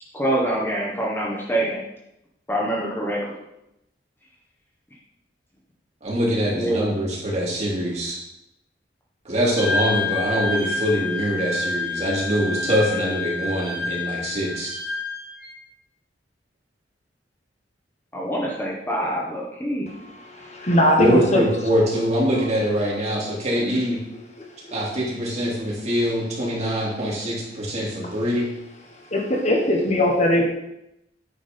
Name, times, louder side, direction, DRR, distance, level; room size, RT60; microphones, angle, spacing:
voice 1, 0.1-1.8 2.5-3.4 6.5-6.9 18.1-19.8 23.5-23.7, right 1 dB, 10° left, -4 dB, 1.5 m, -25 dB
voice 2, 6.0-8.2 9.2-14.7 21.0-24.0 24.7-28.5, equal, 35° right, -5 dB, 3.0 m, -23 dB
Wind instrument woodwind instrument, 9.6-15.6, left 3 dB, 55° left, 1.5 m, -28 dB
voice 3, 20.1-21.4 24.4-24.7 28.0-28.1 29.1-30.4, left 1 dB, 40° left, 0 dB, 1.3 m, -20 dB
9.5 x 4.9 x 5.4 m, 0.86 s
head